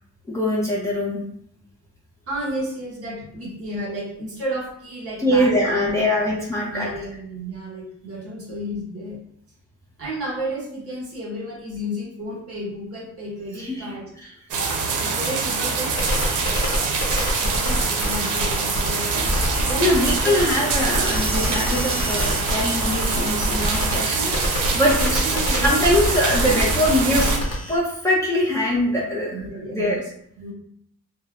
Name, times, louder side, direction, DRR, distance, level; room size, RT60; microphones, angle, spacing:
voice 1, 0.3-1.2 5.2-6.9 13.6-14.0 14.2-14.3 19.8-24.4 24.7-27.3 27.7-29.4 29.7-30.0, left 1 dB, 10° left, -6 dB, 0.5 m, -22 dB
voice 2, 2.3-6.2 6.7-9.2 10.0-14.1 14.6-14.7 15.0-15.9 16.4-16.5 17.4-19.2 19.6-20.5 24.1-24.4 25.0-25.9 29.3-30.1 30.4-30.5, right 1 dB, 50° right, -4 dB, 1.2 m, -32 dB
amb ext steady heavy rain thunder roll quad, 14.5-27.4, right 4 dB, 75° right, 0.6 m, -24 dB
sound 1, 16.0-27.8, equal, 55° left, 0.9 m, -27 dB
3.1 x 2.1 x 2.3 m, 0.68 s
cardioid pair, 120°, 31 cm